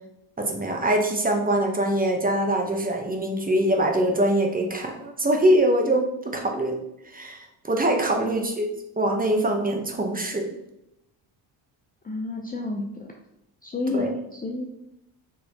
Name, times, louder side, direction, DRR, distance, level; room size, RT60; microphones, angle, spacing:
voice 1, 0.4-6.7 7.1-8.7 9.0-10.4 13.9-14.1, right 1 dB, 20° right, 2 dB, 0.7 m, -23 dB
voice 2, 8.2-8.5 12.0-13.1 13.6-14.6, left 2 dB, 20° left, 1 dB, 0.5 m, -30 dB
4.6 x 3.2 x 2.8 m, 0.83 s
cardioid pair, 85°, 47 cm